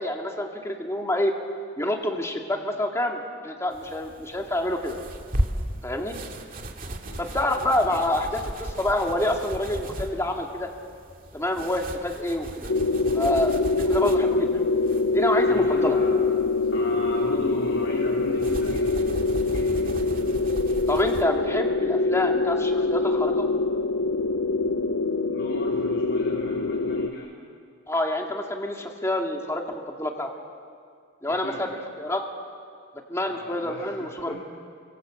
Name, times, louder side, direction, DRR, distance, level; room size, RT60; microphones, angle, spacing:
voice 1, 0.0-1.4 1.8-5.0 5.8-6.2 7.2-10.7 11.3-12.7 13.1-14.6 15.1-16.0 20.9-23.5 27.9-30.3 31.2-31.7 32.0-32.2 33.1-34.4, left 1 dB, 15° left, 1 dB, 2.2 m, -27 dB
sound 1, 3.7-21.2, right 1 dB, 40° right, 2.3 m, -36 dB
sound 2, 12.7-27.1, left 3 dB, 85° left, 1.0 m, -24 dB
voice 2, 15.5-16.1 16.7-19.0 19.5-19.9 25.3-27.3 31.4-31.7 33.3-34.4, left 1 dB, 55° left, -4 dB, 4.4 m, -35 dB
29.5 x 26.0 x 7.7 m, 2.2 s
head